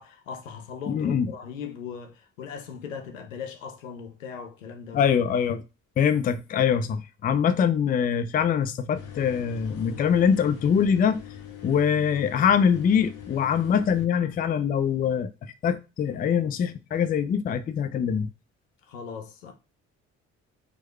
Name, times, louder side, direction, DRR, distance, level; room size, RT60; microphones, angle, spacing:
voice 1, 0.0-5.0 18.9-19.5, left 6 dB, 85° left, 0.6 m, -39 dB
voice 2, 0.9-1.3 4.9-5.6 6.0-11.2 11.6-18.3, left 7 dB, 25° left, 0.4 m, -23 dB
sound 1, 8.9-14.0, left 9 dB, 50° left, 0.8 m, -42 dB
4.6 x 2.2 x 3.1 m
figure-of-eight pair, 45°, 38 cm